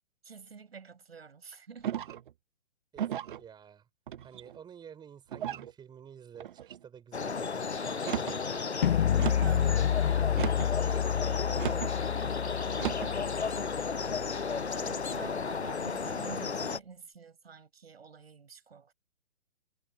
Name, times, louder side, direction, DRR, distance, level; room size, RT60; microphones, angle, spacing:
voice 1, 0.2-2.1 9.4-9.8 14.7-18.9, right 5 dB, 70° right, 7.0 m, -47 dB
sound 1, 1.8-2.3 3.0-3.4 4.1-4.6 5.3-5.7 6.4-6.8 7.9-8.4 9.2-9.6 10.3-10.8 11.6-11.9 12.7-13.1, right 10 dB, 50° right, 0.5 m, -35 dB
voice 2, 2.9-3.9 4.2-9.1 9.4-10.4 10.8-13.8, right 8 dB, 15° right, 6.3 m, -50 dB
sound 2, 7.1-16.8, left 5 dB, 90° left, 0.9 m, -33 dB
sound 3, 8.8-14.8, left 9 dB, 50° left, 1.7 m, -30 dB
figure-of-eight pair, 125°, 32 cm